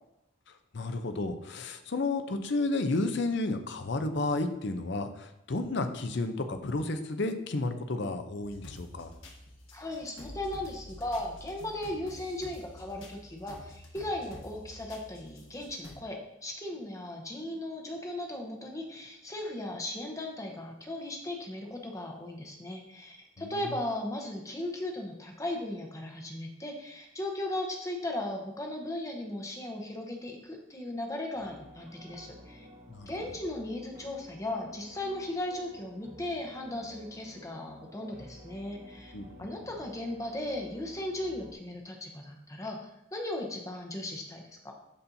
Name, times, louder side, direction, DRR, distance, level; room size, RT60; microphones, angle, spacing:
voice 1, 0.7-9.1 23.4-23.8 32.9-33.1 39.1-39.3, left 2 dB, 55° left, 8 dB, 0.6 m, -32 dB
sound 1, 8.4-16.0, left 1 dB, 75° left, 1.5 m, -49 dB
voice 2, 9.7-32.7 33.1-39.1 39.4-44.7, left 1 dB, 15° left, 1 dB, 0.8 m, -37 dB
sound 2, 31.3-41.5, left 1 dB, 40° right, 1.4 m, -51 dB
12.5 x 4.3 x 2.7 m, 0.83 s
head